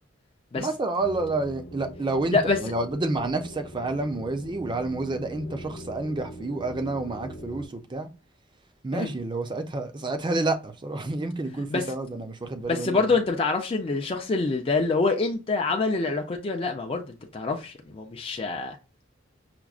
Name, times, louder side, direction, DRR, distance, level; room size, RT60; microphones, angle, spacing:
voice 1, 0.5-8.1 8.8-13.2, right 2 dB, 25° right, 0.5 m, -29 dB
sound 1, 1.0-7.7, equal, 75° left, 0.7 m, -42 dB
voice 2, 12.7-18.8, left 3 dB, 30° left, 0.4 m, -26 dB
5.8 x 2.0 x 2.4 m
head